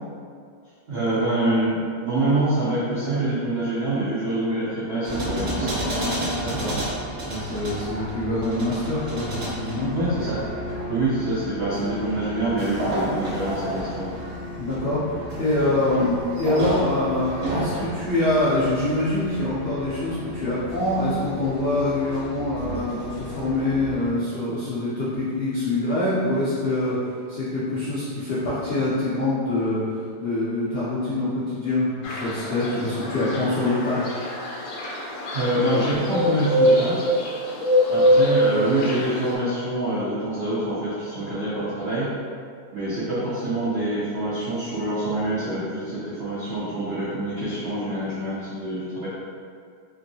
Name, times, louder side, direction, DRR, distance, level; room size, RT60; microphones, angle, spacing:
voice 1, 0.9-5.9 9.9-10.4 10.9-14.1 35.3-37.0 37.9-42.1 42.7-49.1, right 1 dB, 75° right, -10 dB, 0.5 m, -25 dB
sound 1, 5.0-24.1, equal, 55° right, 0.9 m, -31 dB
voice 2, 6.4-6.7 7.3-9.9 14.6-29.8 30.2-34.1, left 2 dB, 85° left, -10 dB, 0.5 m, -25 dB
sound 2, 32.0-39.4, equal, 70° left, 1.0 m, -23 dB
3.0 x 2.6 x 2.7 m, 2.2 s
omnidirectional pair, 1.9 m